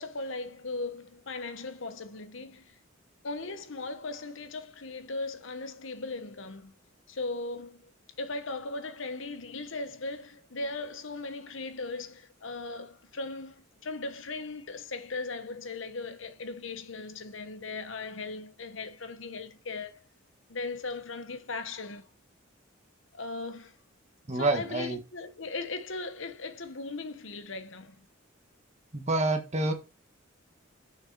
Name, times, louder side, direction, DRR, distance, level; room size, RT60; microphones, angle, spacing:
voice 1, 0.0-2.7 3.2-6.7 7.1-7.9 8.2-20.0 20.5-22.0 23.1-23.7 24.3-28.0, left 3 dB, 65° left, 1.1 m, -38 dB
voice 2, 24.3-25.0 28.9-29.7, right 2 dB, 35° right, 1.4 m, -27 dB
6.4 x 6.3 x 4.8 m
head